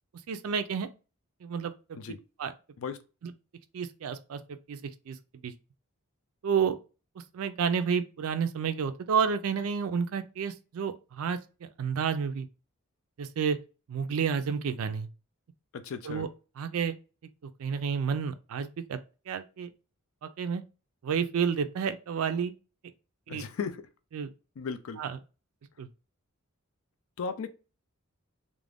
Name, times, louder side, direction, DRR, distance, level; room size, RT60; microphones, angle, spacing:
voice 1, 0.3-0.9 1.4-1.7 2.4-2.5 3.2-3.3 3.7-5.2 5.4-5.5 6.4-6.8 7.3-12.5 13.2-13.6 13.9-15.1 16.0-16.3 16.6-17.0 17.6-19.0 19.3-19.7 20.2-20.6 21.0-22.5 23.3-23.4 24.1-24.3 25.0-25.2 25.8-25.9, right 6 dB, 75° right, 0.4 m, -30 dB
voice 2, 15.7-16.3 23.3-23.9 24.6-25.0 27.2-27.5, left 5 dB, 65° left, 0.4 m, -36 dB
2.4 x 2.1 x 3.3 m
head